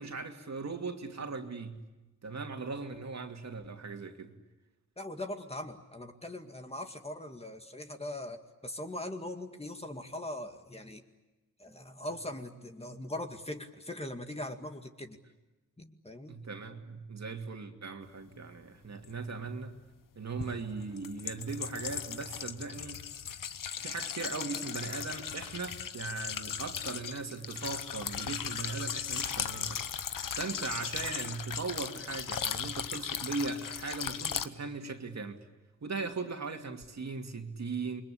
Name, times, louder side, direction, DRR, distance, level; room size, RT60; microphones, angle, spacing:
voice 1, 0.0-1.9 2.2-4.3 16.3-19.8 20.2-23.0 23.8-29.8 30.3-35.4 35.8-38.0, right 4 dB, 55° right, 4 dB, 2.6 m, -38 dB
voice 2, 5.0-11.0 11.6-15.2 15.8-16.4, left 1 dB, 20° left, 5 dB, 2.2 m, -41 dB
sound 1, 19.0-19.1 20.4-34.5, left 8 dB, 80° left, 1.0 m, -37 dB
28.5 x 23.0 x 8.6 m, 1.1 s
wide cardioid pair, 85°, 32 cm